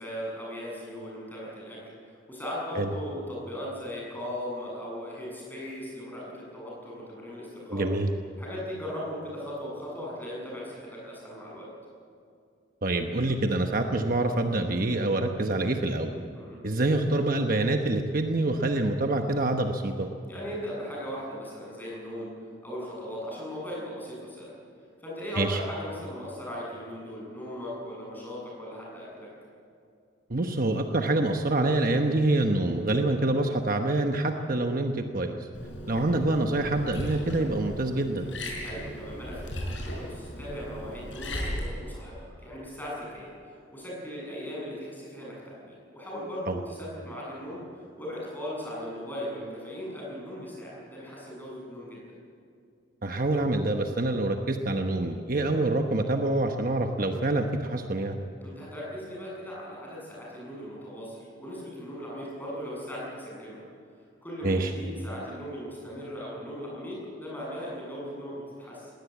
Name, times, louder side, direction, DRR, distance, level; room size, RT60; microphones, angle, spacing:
voice 1, 0.0-7.8 8.4-11.7 16.3-16.6 20.3-22.3 22.6-24.5 25.0-29.3 32.9-33.1 38.6-52.0 58.4-63.6 64.2-68.9, equal, 10° left, -4 dB, 7.8 m, -38 dB
voice 2, 7.7-8.1 12.8-16.2 16.6-20.1 25.4-25.6 30.3-35.4 35.9-38.3 46.5-46.6 53.0-58.2 64.4-64.7, right 2 dB, 45° right, 4 dB, 1.1 m, -26 dB
Liquid, 35.5-41.7, equal, 75° left, 6.2 m, -37 dB
20.0 x 17.5 x 8.6 m, 2.4 s
head